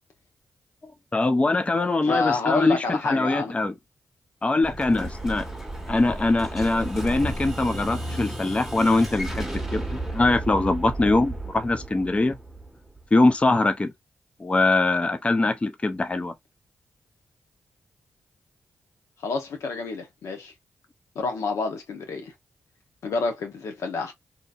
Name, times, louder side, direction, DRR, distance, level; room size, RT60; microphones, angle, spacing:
voice 1, 0.8-3.7 4.4-5.5 5.9-12.4 13.1-13.9 14.4-16.3, left 2 dB, 25° left, 0.4 m, -23 dB
voice 2, 2.0-3.5 19.2-20.5 21.1-22.3 23.0-24.1, left 4 dB, 85° left, 0.8 m, -28 dB
Explosion, 4.6-13.3, right 1 dB, 5° right, 1.2 m, -33 dB
2.8 x 2.5 x 2.3 m
cardioid pair, 60°, 5 cm